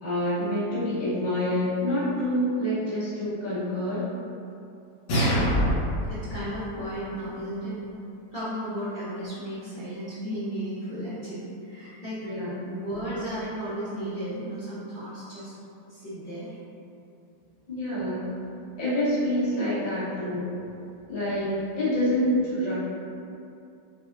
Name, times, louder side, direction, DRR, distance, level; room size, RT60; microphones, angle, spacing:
voice 1, 0.0-4.0 12.2-12.7 17.7-18.2 18.8-20.5 21.1-22.7, left 1 dB, 30° left, -12 dB, 0.8 m, -27 dB
sound 1, 5.1-6.1, equal, 75° left, 1.6 m, -23 dB
voice 2, 5.1-5.8 6.1-7.8 8.3-12.3 12.7-15.5 15.9-16.5 22.2-22.4, right 1 dB, 60° left, -12 dB, 0.5 m, -34 dB
6.0 x 2.1 x 2.5 m, 2.7 s
omnidirectional pair, 2.0 m